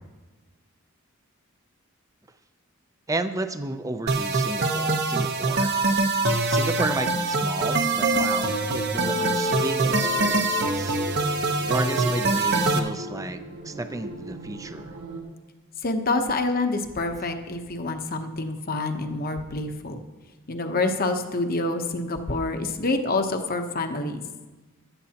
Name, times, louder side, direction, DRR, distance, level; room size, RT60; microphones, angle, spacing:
voice 1, 3.1-5.8 6.4-11.0 11.6-15.0, right 2 dB, 15° right, 9 dB, 0.5 m, -32 dB
sound 1, 4.1-12.8, right 3 dB, 50° right, 1.0 m, -24 dB
sound 2, 7.3-15.2, left 1 dB, 90° right, 1.9 m, -34 dB
voice 2, 15.8-20.0 20.5-24.2, left 2 dB, 45° left, 6 dB, 0.9 m, -27 dB
16.0 x 11.5 x 2.9 m, 1.3 s
head